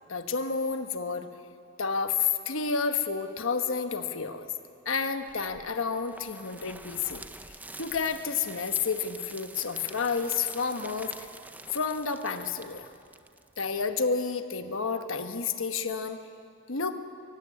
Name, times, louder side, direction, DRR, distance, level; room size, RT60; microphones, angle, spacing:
voice 1, 0.1-1.3 1.8-4.5 4.8-7.2 7.8-11.3 11.7-12.9 13.6-16.2 16.7-17.0, left 5 dB, 75° left, 7 dB, 1.2 m, -30 dB
sound 1, 5.2-14.0, right 2 dB, 10° right, 0.6 m, -47 dB
23.0 x 15.0 x 9.8 m, 2.4 s
head